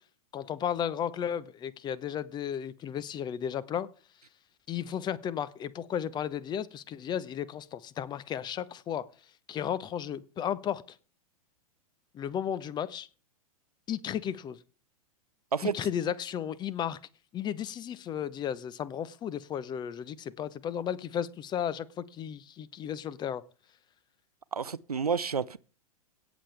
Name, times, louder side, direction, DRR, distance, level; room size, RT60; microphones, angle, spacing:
voice 1, 0.3-3.9 4.7-9.1 9.5-11.0 12.1-13.1 13.9-14.6 15.6-17.0 17.3-23.4, left 9 dB, 25° left, 0.8 m, -34 dB
voice 2, 24.5-25.6, right 5 dB, 85° right, 0.6 m, -30 dB
17.5 x 7.2 x 3.3 m
figure-of-eight pair, 100°, 19 cm